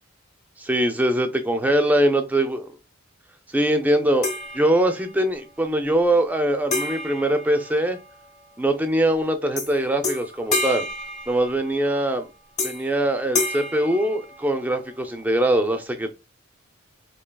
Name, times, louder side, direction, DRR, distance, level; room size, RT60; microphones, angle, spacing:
voice 1, 0.6-2.7 3.5-4.3 4.5-8.0 8.6-10.9 11.3-12.3 12.6-16.2, right 1 dB, 10° right, 0.4 m, -22 dB
sound 1, 4.2-5.2 6.7-8.3 9.6-9.7 10.0-11.9 12.6-13.0 13.3-14.8, left 3 dB, 35° left, 0.9 m, -29 dB
4.5 x 2.8 x 2.2 m
head